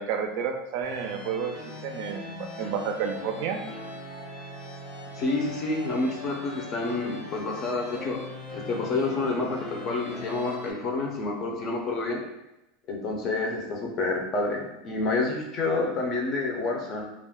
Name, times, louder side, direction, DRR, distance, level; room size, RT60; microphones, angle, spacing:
voice 1, 0.0-3.6, right 6 dB, 60° right, 5 dB, 0.4 m, -31 dB
sound 1, 0.8-10.7, left 2 dB, 60° left, 1.0 m, -40 dB
voice 2, 5.1-8.2 8.5-12.2 12.9-17.1, left 3 dB, 35° left, 1 dB, 0.6 m, -28 dB
2.4 x 2.1 x 3.5 m, 0.93 s
supercardioid pair, 135°, 0 cm